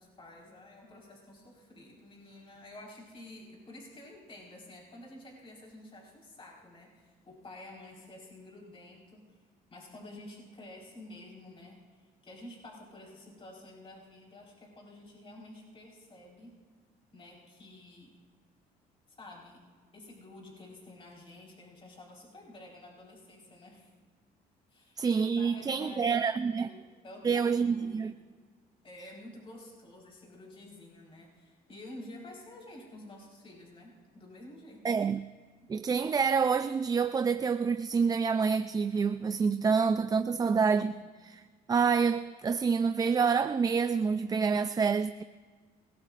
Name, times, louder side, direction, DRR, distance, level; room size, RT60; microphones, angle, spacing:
voice 1, 0.0-9.3 9.7-16.6 17.1-18.2 19.1-19.7 19.9-23.9 24.7-28.2 28.8-35.0 35.6-35.7 40.2-41.1, left 1 dB, 30° left, 4.5 m, -50 dB
voice 2, 25.0-26.7 27.2-28.1 34.8-35.2 35.7-40.9 41.2-41.4 41.7-45.2, right 5 dB, 20° right, 0.4 m, -27 dB
27.0 x 18.5 x 2.5 m
cardioid pair, 110°, 17 cm